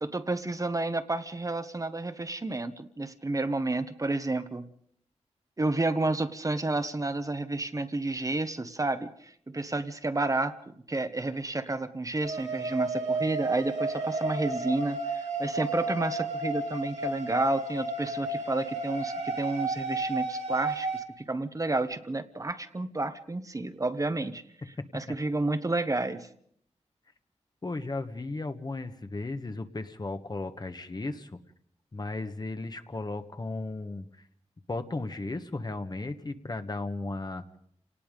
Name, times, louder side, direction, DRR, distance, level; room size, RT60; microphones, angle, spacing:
voice 1, 0.0-4.7 5.6-24.4 24.9-26.3, right 2 dB, 30° right, 10 dB, 1.1 m, -31 dB
sound 1, 12.2-21.0, right 2 dB, 75° right, 2.5 m, -32 dB
voice 2, 27.6-31.4 31.9-34.1 34.7-37.4, left 2 dB, 35° left, 8 dB, 1.4 m, -35 dB
29.0 x 18.5 x 5.2 m, 0.65 s
wide cardioid pair, 80°, 12 cm